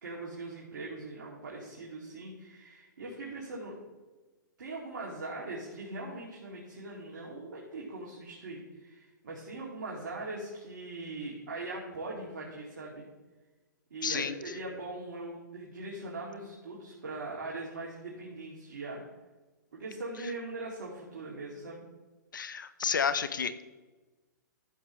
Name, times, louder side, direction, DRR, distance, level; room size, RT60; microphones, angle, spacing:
voice 1, 0.0-3.8 4.6-13.0 13.9-19.0 19.7-21.8, right 2 dB, 70° right, -4 dB, 2.4 m, -41 dB
voice 2, 14.0-14.4 22.3-23.5, left 6 dB, 80° left, 13 dB, 0.8 m, -30 dB
13.5 x 7.7 x 3.1 m, 1.2 s
hypercardioid pair, 125°, 10 cm